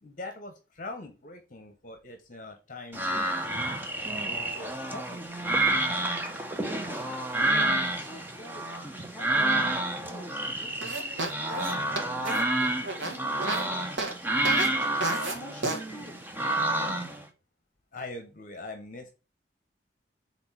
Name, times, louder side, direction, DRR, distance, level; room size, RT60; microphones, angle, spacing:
voice 1, 0.0-3.8 4.1-5.3 17.9-19.1, left 2 dB, 45° left, 1.0 m, -43 dB
sound 1, 2.9-17.2, right 2 dB, 10° right, 0.6 m, -29 dB
voice 2, 6.7-7.3 7.9-8.8 9.1-12.2 13.0-16.2, equal, 5° left, 1.4 m, -49 dB
sound 2, 10.8-13.6 14.0-14.1 14.4-14.7 15.0-15.3 15.6-15.8, right 2 dB, 80° right, 1.3 m, -31 dB
4.3 x 4.0 x 5.6 m
head